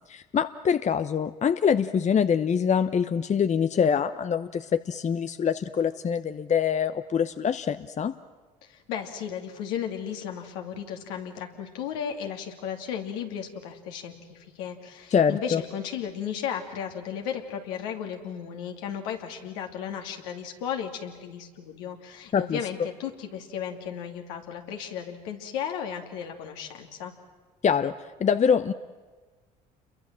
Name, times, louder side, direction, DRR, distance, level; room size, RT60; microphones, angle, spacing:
voice 1, 0.0-8.1 15.1-15.6 22.3-22.6 27.6-27.9 28.2-28.7, left 7 dB, 35° left, 12 dB, 0.8 m, -24 dB
voice 2, 8.6-27.1, left 8 dB, 75° left, 3 dB, 2.8 m, -35 dB
29.0 x 22.5 x 7.6 m, 1.4 s
hypercardioid pair, 60°, 21 cm